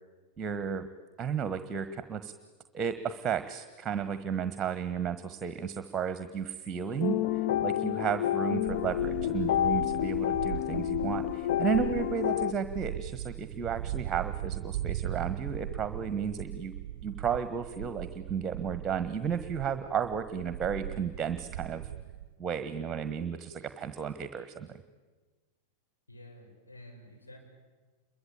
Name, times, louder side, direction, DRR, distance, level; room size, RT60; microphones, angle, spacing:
voice 1, 0.4-0.9 1.2-2.3 2.7-16.7 17.0-21.8 22.4-24.8, right 7 dB, 20° right, 11 dB, 1.5 m, -33 dB
sound 1, 7.0-12.5, left 12 dB, 50° left, 0.8 m, -29 dB
sound 2, 8.7-22.3, right 13 dB, 45° right, 0.8 m, -39 dB
voice 2, 26.1-27.4, left 1 dB, 80° left, 0 dB, 7.5 m, -50 dB
28.5 x 23.0 x 8.9 m, 1.3 s
figure-of-eight pair, 90°, 0 cm